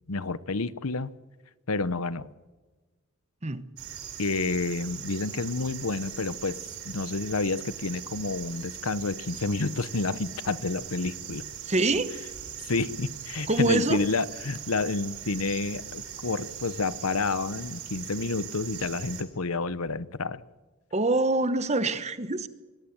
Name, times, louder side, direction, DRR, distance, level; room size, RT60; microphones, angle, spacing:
voice 1, 0.1-1.1 1.7-2.3 4.2-6.6 6.8-11.5 12.6-20.4, left 3 dB, 80° left, 16 dB, 0.9 m, -29 dB
sound 1, 3.8-19.2, right 9 dB, 75° right, 4.9 m, -40 dB
voice 2, 11.6-12.1 13.5-14.0 20.9-22.5, right 2 dB, 30° right, 13 dB, 1.2 m, -25 dB
24.0 x 17.5 x 9.3 m, 1.2 s
head